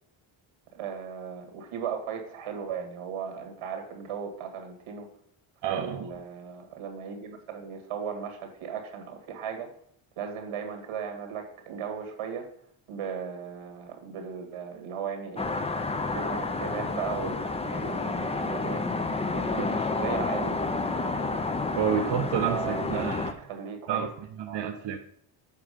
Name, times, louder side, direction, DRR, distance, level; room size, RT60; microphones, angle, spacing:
voice 1, 0.7-5.1 5.7-9.7 10.2-12.5 12.9-15.5 16.1-18.8 19.3-20.6 22.5-24.1 24.5-24.6, right 7 dB, 90° right, 4 dB, 1.9 m, -36 dB
voice 2, 5.6-6.1 19.6-19.7 21.7-23.3 23.9-24.1 24.4-25.0, right 8 dB, 60° right, 4 dB, 0.8 m, -29 dB
sound 1, 15.4-23.3, left 3 dB, 15° left, 0.4 m, -30 dB
7.6 x 4.8 x 5.0 m, 0.66 s
cardioid pair, 110°, 49 cm